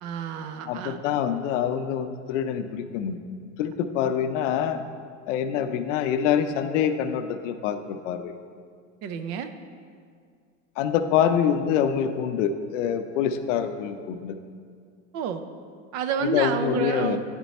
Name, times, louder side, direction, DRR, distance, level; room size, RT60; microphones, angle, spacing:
voice 1, 0.0-1.0 9.0-9.5 15.1-15.4 15.9-17.2, right 7 dB, 50° right, 9 dB, 0.5 m, -29 dB
voice 2, 0.7-3.2 3.6-4.9 5.3-8.3 10.8-14.4 16.2-17.2, left 8 dB, 80° left, 9 dB, 0.6 m, -25 dB
10.0 x 4.4 x 4.1 m, 2.1 s
supercardioid pair, 135°, 36 cm